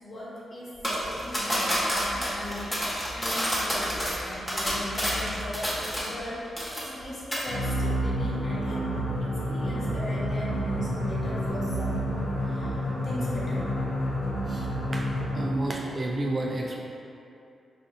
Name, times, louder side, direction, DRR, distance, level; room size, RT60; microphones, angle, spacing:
voice 1, 0.0-8.8 9.2-12.0 12.4-13.7, left 1 dB, 50° left, -7 dB, 1.2 m, -38 dB
sound 1, 0.8-6.3 6.6-7.0 7.3-7.5, equal, 15° left, 1.1 m, -29 dB
sound 2, 7.5-15.7, equal, 85° left, 0.6 m, -29 dB
voice 2, 15.3-16.8, right 2 dB, 45° right, -1 dB, 0.4 m, -30 dB
5.0 x 2.5 x 2.7 m, 2.7 s
cardioid pair, 65°, 0 cm